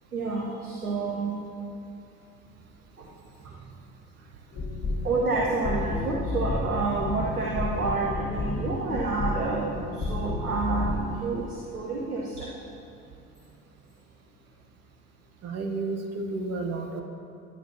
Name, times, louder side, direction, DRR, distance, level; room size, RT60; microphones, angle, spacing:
voice 1, 0.1-1.4 3.0-3.1 5.0-9.7 10.0-12.5, right 3 dB, 90° right, -3 dB, 0.7 m, -29 dB
voice 2, 3.4-3.8 7.1-7.2 15.4-17.0, right 3 dB, 35° right, 2 dB, 1.0 m, -32 dB
sound 1, 4.5-11.2, left 2 dB, 40° left, 1.8 m, -31 dB
11.5 x 9.1 x 2.7 m, 2.7 s
figure-of-eight pair, 55°, 43 cm